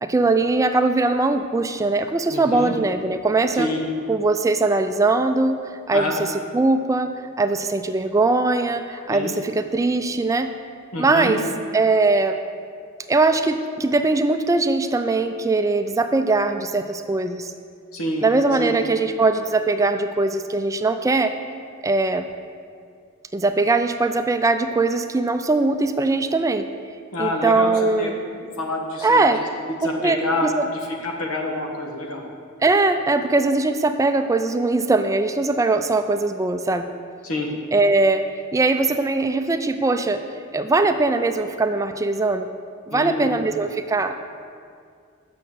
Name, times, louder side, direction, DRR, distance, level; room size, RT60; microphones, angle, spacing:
voice 1, 0.0-3.7 4.1-5.6 5.9-7.1 7.4-10.5 11.0-11.4 11.7-12.4 13.1-17.5 18.2-21.3 21.8-22.3 23.3-26.7 27.2-28.2 29.0-29.4 30.0-30.7 32.6-36.9 37.7-38.3 38.5-40.2 40.5-42.5 42.9-44.2, right 3 dB, 15° right, 8 dB, 0.3 m, -21 dB
voice 2, 2.3-2.7 3.5-3.8 5.9-6.1 9.1-9.3 10.9-11.3 17.9-18.3 18.6-18.7 27.1-29.2 29.8-32.2 37.2-37.5 42.9-43.3, left 1 dB, 90° left, 1 dB, 1.4 m, -27 dB
6.5 x 6.5 x 7.5 m, 2.2 s
head